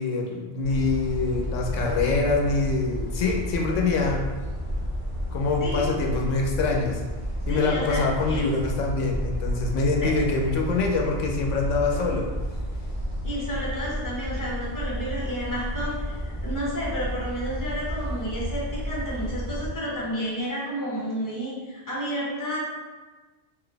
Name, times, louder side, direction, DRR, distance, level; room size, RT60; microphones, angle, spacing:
voice 1, 0.0-4.3 5.3-7.0 7.5-12.3, left 3 dB, 85° left, 0 dB, 1.0 m, -25 dB
sound 1, 0.6-19.8, equal, 40° right, 1.3 m, -31 dB
voice 2, 7.5-8.5 10.0-10.1 13.2-22.6, equal, 20° left, -5 dB, 0.9 m, -31 dB
3.9 x 2.8 x 3.3 m, 1.3 s
omnidirectional pair, 1.3 m